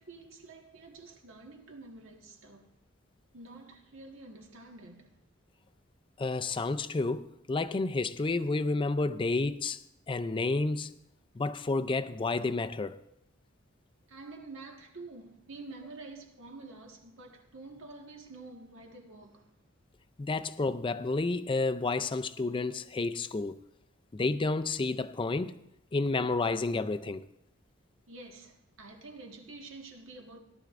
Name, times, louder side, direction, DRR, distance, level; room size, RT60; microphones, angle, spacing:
voice 1, 0.0-2.7 3.3-5.2 14.1-19.6 28.1-30.4, right 3 dB, 75° right, 1.6 m, -48 dB
voice 2, 6.2-9.8 10.1-10.9 11.4-13.0 20.2-23.6 24.1-25.6 25.9-27.3, left 3 dB, 25° left, 0.4 m, -30 dB
17.5 x 11.5 x 2.5 m
head